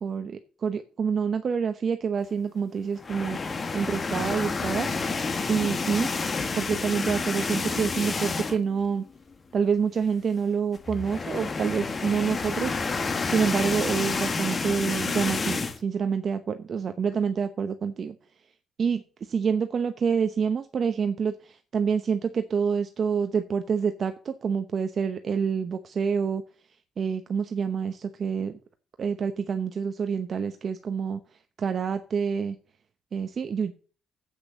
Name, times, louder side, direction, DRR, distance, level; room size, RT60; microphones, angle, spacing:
voice 1, 0.0-3.4 3.7-4.9 5.5-6.1 6.6-9.0 9.5-12.8 13.3-18.1 18.8-19.0 19.3-26.4 27.0-28.5 29.0-31.2 31.6-32.6 33.1-33.7, right 6 dB, 50° right, 8 dB, 0.9 m, -27 dB
sound 1, 3.0-8.8 9.2-9.3 9.6-9.7 10.7-15.8, left 4 dB, 35° left, 1.3 m, -29 dB
8.4 x 6.3 x 7.3 m, 0.39 s
cardioid pair, 90°, 0 cm